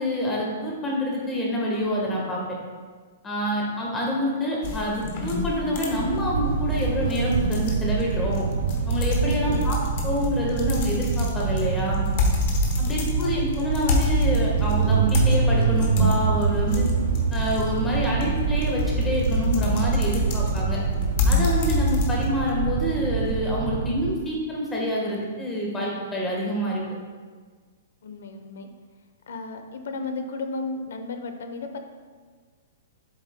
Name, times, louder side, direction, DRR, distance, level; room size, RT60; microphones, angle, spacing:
voice 1, 0.0-2.6 3.2-8.5 8.9-9.8 10.0-12.1 12.8-16.9 17.3-20.8 21.2-26.8, equal, 10° left, -3 dB, 1.3 m, -27 dB
sound 1, 4.6-22.5, left 4 dB, 40° left, 1.0 m, -29 dB
sound 2, 5.9-24.2, right 6 dB, 80° right, 0.5 m, -25 dB
voice 2, 9.4-9.8 12.9-13.3 28.0-28.7 29.3-31.8, left 3 dB, 75° left, 7 dB, 0.8 m, -34 dB
7.8 x 7.3 x 2.2 m, 1.5 s
hypercardioid pair, 165°, 0 cm